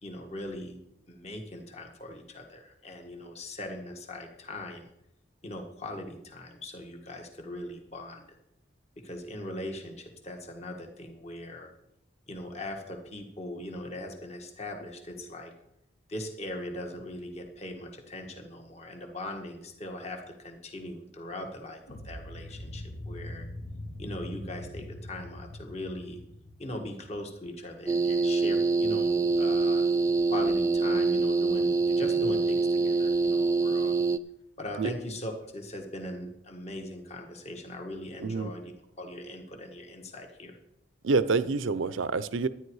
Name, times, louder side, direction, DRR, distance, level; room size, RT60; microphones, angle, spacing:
voice 1, 0.0-0.8 1.1-4.9 5.4-8.3 9.0-11.7 12.3-15.5 16.1-23.5 24.0-26.2 26.6-29.8 30.3-33.9 34.6-38.7 39.0-40.6, left 1 dB, 35° left, 3 dB, 1.6 m, -40 dB
sound 1, 21.9-27.9, left 1 dB, 65° left, 1.3 m, -42 dB
sound 2, 27.9-34.2, right 4 dB, 15° right, 0.3 m, -25 dB
voice 2, 38.2-38.5 41.0-42.5, right 4 dB, 80° right, 15 dB, 0.6 m, -27 dB
12.5 x 10.0 x 4.8 m, 0.81 s
head